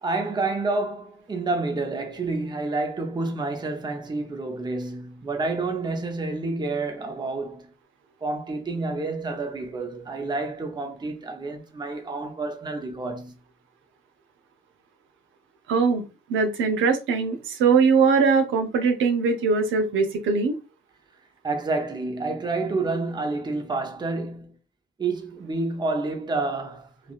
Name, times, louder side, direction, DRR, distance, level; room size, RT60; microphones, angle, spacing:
voice 1, 0.0-7.7 8.2-13.3 21.4-24.5 25.0-27.1, right 3 dB, 20° right, 0.6 m, -29 dB
voice 2, 15.7-16.0 16.3-20.6, right 5 dB, 80° right, 0.7 m, -21 dB
3.3 x 2.4 x 2.4 m
cardioid pair, 90°, 20 cm